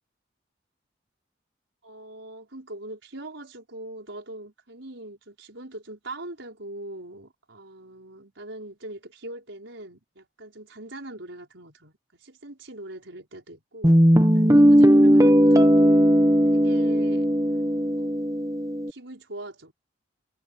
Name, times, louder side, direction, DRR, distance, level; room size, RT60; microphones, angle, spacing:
voice 1, 1.8-13.9 14.3-16.0 16.5-17.3 18.0-18.2 18.9-19.7, right 1 dB, 85° right, 5.6 m, -41 dB
Guitar, 13.8-18.9, equal, 15° right, 1.3 m, -18 dB
head